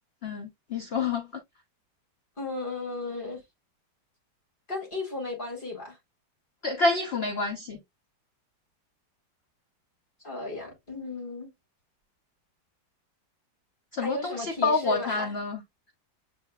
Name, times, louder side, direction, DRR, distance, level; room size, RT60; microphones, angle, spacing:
voice 1, 0.2-1.3 6.6-7.8 13.9-15.6, left 3 dB, 65° left, 0.6 m, -28 dB
voice 2, 2.4-3.4 4.7-6.0 10.2-11.5 14.0-15.3, left 2 dB, 30° left, 1.8 m, -35 dB
7.3 x 3.1 x 2.2 m
omnidirectional pair, 2.0 m